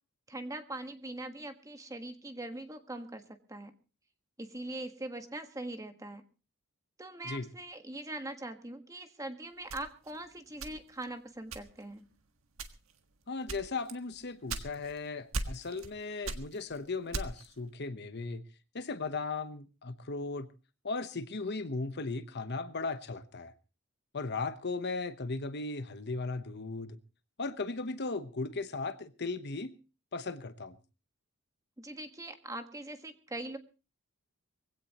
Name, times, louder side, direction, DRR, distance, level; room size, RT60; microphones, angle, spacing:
voice 1, 0.3-3.7 4.4-6.2 7.0-12.1 31.8-33.6, right 1 dB, 15° right, 1.5 m, -42 dB
sound 1, 9.7-11.1 11.5-12.0 12.5-13.0 13.5-15.0 15.3-15.9 16.2-17.6, right 3 dB, 70° right, 1.6 m, -38 dB
voice 2, 13.3-18.4 18.7-20.5 20.8-23.5 24.1-27.0 27.4-29.7 30.1-30.8, left 3 dB, 50° left, 1.0 m, -37 dB
22.0 x 16.5 x 3.0 m
head